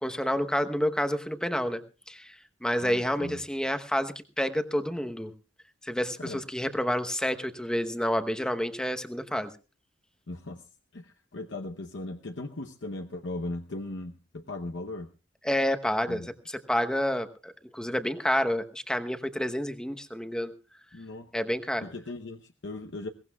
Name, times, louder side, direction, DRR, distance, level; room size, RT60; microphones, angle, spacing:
voice 1, 0.0-2.4 2.6-5.3 5.8-9.5 15.4-20.5 21.3-21.8, equal, 5° left, 7 dB, 1.0 m, -29 dB
voice 2, 2.8-3.4 6.2-6.4 10.3-10.6 10.9-15.1 16.1-16.3 20.9-21.3 21.8-23.1, left 2 dB, 75° left, 4 dB, 0.9 m, -38 dB
22.0 x 18.0 x 2.3 m, 0.33 s
head